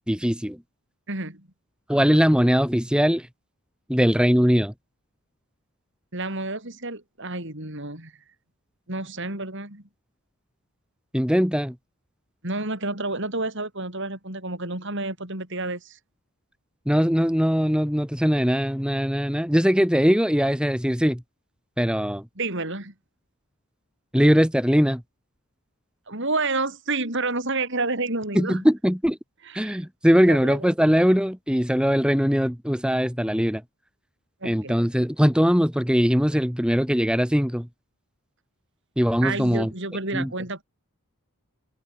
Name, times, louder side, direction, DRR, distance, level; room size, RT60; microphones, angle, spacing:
voice 1, 0.1-0.6 1.9-3.3 3.9-4.7 11.1-11.7 16.8-21.2 21.8-22.2 24.1-25.0 28.3-29.2 29.5-33.6 34.4-37.7 39.0-39.7 40.1-40.3, equal, 5° right, 3.4 m, -21 dB
voice 2, 1.1-1.5 6.1-8.1 8.9-9.8 12.4-16.0 22.4-22.9 26.1-28.6 29.4-29.8 30.3-30.7 34.4-34.7 39.2-40.6, right 3 dB, 55° right, 6.2 m, -29 dB
head